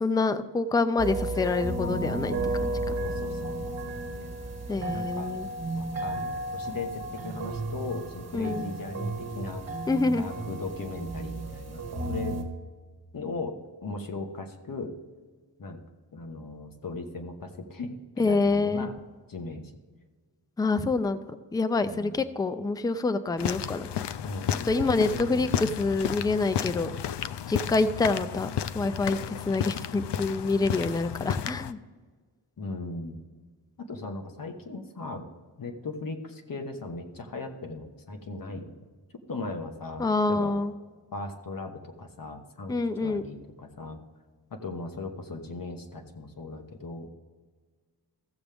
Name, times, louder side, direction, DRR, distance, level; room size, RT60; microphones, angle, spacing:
voice 1, 0.0-2.4 2.6-2.9 4.7-5.5 8.3-8.6 9.9-10.3 18.2-18.9 20.6-21.2 21.5-23.9 24.6-26.9 27.5-28.5 28.7-29.2 29.5-31.8 40.0-40.7 42.7-43.2, left 3 dB, 10° left, 11 dB, 0.4 m, -26 dB
sound 1, 1.0-12.4, right 2 dB, 35° right, 1.5 m, -33 dB
voice 2, 3.0-3.6 3.8-4.3 4.8-5.3 5.7-9.6 10.2-12.4 13.1-13.5 13.8-14.9 15.6-15.8 16.1-18.9 19.3-19.7 21.9-22.2 24.2-25.6 32.6-33.2 33.8-35.3 35.6-38.8 39.3-40.6 41.1-44.0 44.5-47.1, left 3 dB, 50° left, 4 dB, 1.3 m, -38 dB
sound 2, 23.4-31.7, left 9 dB, 70° left, 0.5 m, -32 dB
15.5 x 7.1 x 3.4 m, 1.5 s
wide cardioid pair, 130°, 43 cm